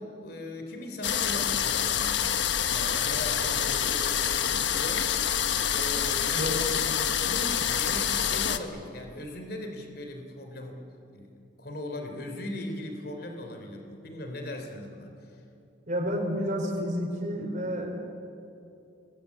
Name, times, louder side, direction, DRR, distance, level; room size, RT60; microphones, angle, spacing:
voice 1, 0.0-2.3 2.7-5.1 5.7-6.5 7.0-10.8 11.1-11.3 11.6-15.4, left 1 dB, 55° left, 4 dB, 3.5 m, -39 dB
sound 1, 1.0-8.6, left 8 dB, 70° left, 1.2 m, -27 dB
voice 2, 15.9-17.9, equal, 40° right, -2 dB, 5.1 m, -30 dB
29.0 x 22.0 x 8.6 m, 2.6 s
head